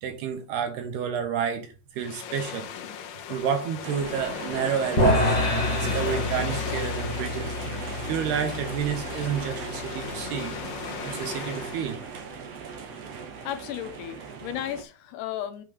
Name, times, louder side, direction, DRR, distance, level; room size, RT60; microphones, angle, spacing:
voice 1, 0.0-2.7 3.3-5.3 5.7-10.6 11.0-12.0, right 7 dB, 80° right, 3.3 m, -30 dB
sound 1, 2.0-12.0, left 7 dB, 65° left, 2.7 m, -37 dB
sound 2, 3.8-14.8, right 5 dB, 55° right, 2.0 m, -39 dB
sound 3, 5.0-11.3, left 1 dB, 20° left, 1.0 m, -28 dB
voice 2, 13.4-15.6, left 11 dB, 85° left, 3.1 m, -34 dB
7.5 x 5.4 x 5.0 m
omnidirectional pair, 4.6 m